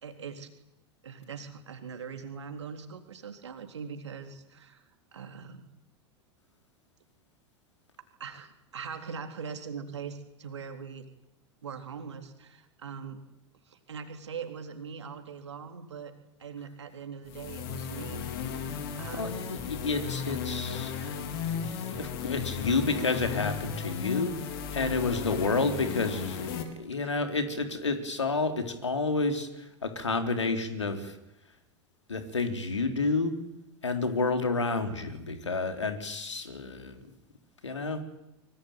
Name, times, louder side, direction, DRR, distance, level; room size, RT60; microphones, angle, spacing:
voice 1, 0.0-0.5 1.0-4.8 5.1-5.7 8.2-11.1 11.6-13.2 13.7-16.1 16.4-18.3 19.0-19.6 26.0-26.1 27.0-27.1, right 6 dB, 70° right, 6 dB, 3.7 m, -41 dB
sound 1, 17.3-26.6, left 7 dB, 50° left, 4.5 m, -35 dB
voice 2, 19.1-21.2 21.9-24.3 24.7-31.2 32.1-33.3 33.8-37.0 37.6-38.0, left 3 dB, 75° left, 7 dB, 3.9 m, -30 dB
24.5 x 24.0 x 9.4 m, 0.89 s
figure-of-eight pair, 90°, 15 cm